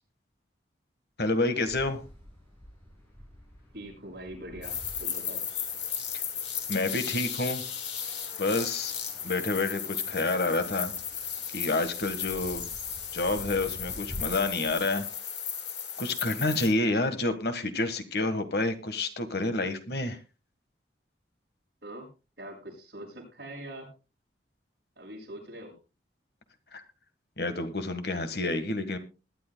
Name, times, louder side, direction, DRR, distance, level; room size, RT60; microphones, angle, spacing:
voice 1, 1.2-2.0 6.1-6.2 6.7-7.6 8.4-9.0 9.2-10.9 11.5-12.6 13.1-15.1 16.0-20.2 26.7-26.8 27.4-29.0, left 2 dB, 60° left, 9 dB, 1.5 m, -29 dB
sound 1, 1.6-15.0, equal, 10° left, 7.5 m, -49 dB
voice 2, 3.7-5.4 21.8-22.1 22.4-23.9 25.0-25.7, right 1 dB, 60° right, -1 dB, 6.5 m, -43 dB
sound 2, 4.6-16.7, left 8 dB, 75° left, 2.5 m, -35 dB
21.0 x 10.5 x 2.2 m, 0.30 s
head